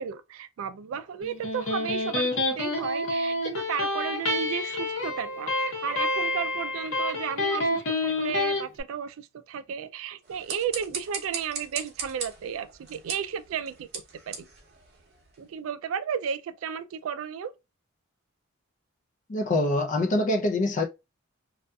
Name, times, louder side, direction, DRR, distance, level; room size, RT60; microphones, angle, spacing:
voice 1, 0.0-14.5 15.4-17.5, right 8 dB, 75° right, 0.3 m, -34 dB
Electric guitar, 1.2-8.6, left 2 dB, 65° left, 0.9 m, -28 dB
sound 1, 10.2-15.5, right 5 dB, 50° right, 0.7 m, -39 dB
voice 2, 19.3-20.8, left 2 dB, 35° left, 0.4 m, -24 dB
2.6 x 2.4 x 2.2 m
head